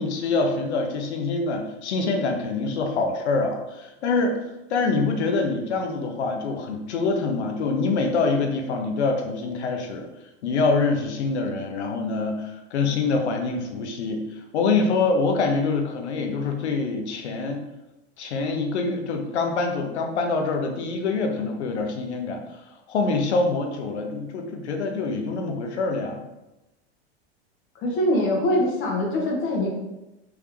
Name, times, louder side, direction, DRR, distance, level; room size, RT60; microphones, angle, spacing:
voice 1, 0.0-4.4 4.7-10.1 10.4-17.6 18.2-22.4 22.9-26.3, left 3 dB, 90° left, 4 dB, 0.8 m, -25 dB
voice 2, 27.8-29.7, left 1 dB, 35° left, -1 dB, 1.3 m, -23 dB
3.6 x 3.3 x 3.2 m, 0.97 s
hypercardioid pair, 115°, 33 cm